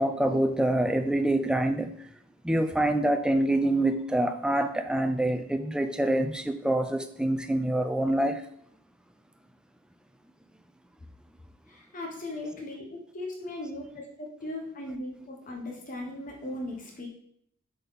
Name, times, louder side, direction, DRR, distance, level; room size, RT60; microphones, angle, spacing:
voice 1, 0.0-1.9 2.4-8.4, right 1 dB, 5° right, 7 dB, 0.4 m, -26 dB
voice 2, 11.7-17.1, left 1 dB, 40° left, 0 dB, 1.0 m, -38 dB
7.6 x 4.1 x 4.0 m, 0.68 s
head